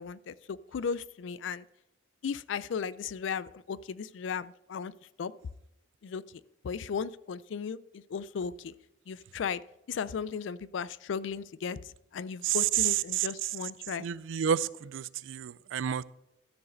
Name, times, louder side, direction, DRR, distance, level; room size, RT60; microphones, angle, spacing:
voice 1, 0.0-1.7 2.2-4.9 5.2-5.3 6.0-6.2 6.6-8.8 9.1-9.6 9.9-14.1, left 6 dB, 80° left, 18 dB, 0.4 m, -36 dB
voice 2, 12.4-13.6 14.0-16.0, right 10 dB, 90° right, 19 dB, 0.4 m, -30 dB
13.0 x 4.8 x 6.3 m, 0.88 s
head